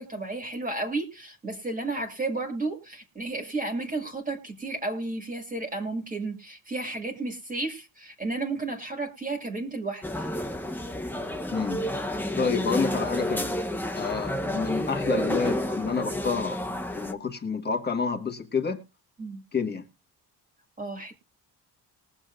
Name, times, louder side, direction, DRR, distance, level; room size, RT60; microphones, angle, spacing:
voice 1, 0.0-10.0 19.2-19.4 20.8-21.1, right 2 dB, 20° right, 2.0 m, -32 dB
sound 1, 10.0-17.1, left 1 dB, 5° left, 0.8 m, -30 dB
voice 2, 11.5-11.8 12.3-13.6 13.9-16.6 16.9-18.8 19.5-19.8, left 5 dB, 25° left, 1.4 m, -29 dB
20.5 x 7.2 x 2.5 m
cardioid pair, 165°, 39 cm